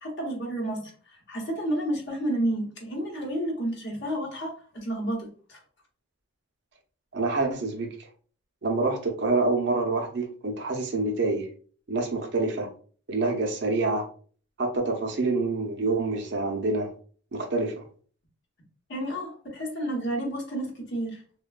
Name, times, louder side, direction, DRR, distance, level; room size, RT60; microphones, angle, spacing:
voice 1, 0.0-5.6 18.9-21.2, right 1 dB, 50° left, 0 dB, 0.8 m, -31 dB
voice 2, 7.1-7.9 8.6-11.5 11.9-12.7 13.1-14.1 14.6-16.9 17.3-17.8, right 3 dB, 55° right, 3 dB, 0.5 m, -26 dB
3.1 x 2.2 x 2.3 m, 0.42 s
head